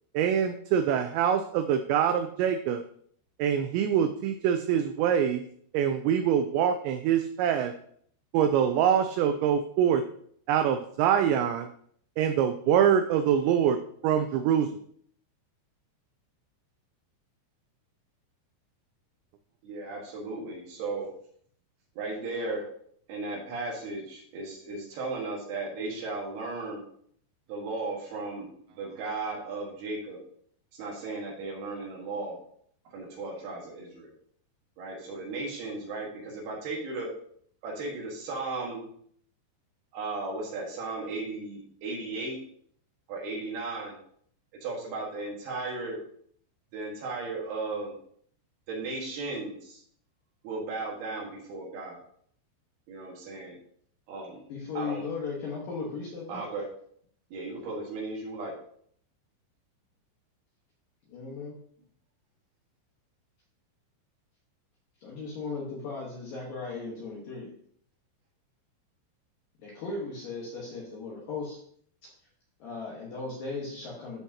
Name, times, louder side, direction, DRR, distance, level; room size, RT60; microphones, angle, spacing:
voice 1, 0.1-2.8 3.4-5.4 5.7-7.7 8.3-10.0 10.5-11.7 12.2-13.8 14.0-14.7, right 8 dB, 90° right, 8 dB, 2.5 m, -24 dB
voice 2, 19.6-21.1 22.0-22.6 23.1-26.8 27.5-28.5 28.8-30.2 30.8-32.4 32.8-34.1 34.8-37.1 37.6-38.9 39.9-42.4 43.1-44.0 44.6-46.0 46.7-48.0 48.7-49.8 50.4-52.0 52.9-53.6 54.1-54.4 54.7-55.1 56.3-56.7 57.3-58.5, right 3 dB, 65° right, -2 dB, 3.1 m, -35 dB
voice 3, 54.5-56.4 61.1-61.6 65.0-67.5 69.6-71.6 72.0-72.1 72.6-74.2, left 4 dB, 65° left, -4 dB, 2.3 m, -37 dB
14.0 x 4.6 x 2.8 m, 0.63 s
omnidirectional pair, 5.7 m